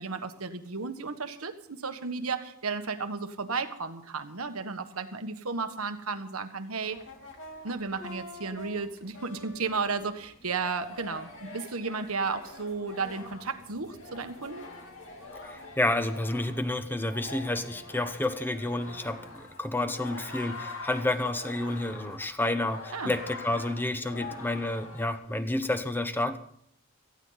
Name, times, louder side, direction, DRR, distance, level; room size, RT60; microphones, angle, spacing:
voice 1, 0.0-7.0 7.6-14.7 22.9-23.1, right 4 dB, 85° right, 8 dB, 1.4 m, -33 dB
sound 1, 6.8-25.5, left 2 dB, 65° left, 2.9 m, -45 dB
voice 2, 15.3-26.4, left 2 dB, 10° left, 10 dB, 1.0 m, -30 dB
18.0 x 14.5 x 4.1 m, 0.65 s
head